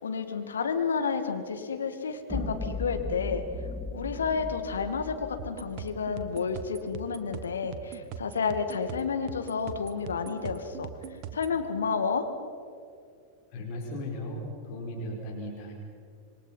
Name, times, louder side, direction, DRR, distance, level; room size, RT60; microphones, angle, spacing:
voice 1, 0.0-3.4 3.9-10.9 11.3-12.3, left 5 dB, 70° left, 7 dB, 2.0 m, -30 dB
sound 1, 2.3-6.6, left 2 dB, ahead, 1.8 m, -37 dB
sound 2, 5.4-11.6, right 8 dB, 40° right, 1.6 m, -42 dB
voice 2, 13.5-15.7, left 1 dB, 45° left, 0 dB, 4.9 m, -36 dB
27.0 x 22.5 x 5.8 m, 2.4 s
figure-of-eight pair, 90°, 0 cm